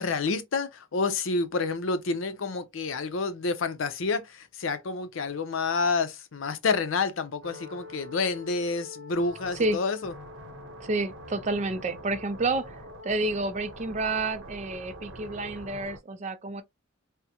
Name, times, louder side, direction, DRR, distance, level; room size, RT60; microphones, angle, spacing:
voice 1, 0.0-10.1, left 4 dB, 80° left, 0.6 m, -29 dB
sound 1, 7.4-16.0, equal, 80° right, 0.9 m, -44 dB
voice 2, 10.8-12.8 13.0-16.6, right 2 dB, 35° right, 0.4 m, -29 dB
3.6 x 2.1 x 2.8 m
head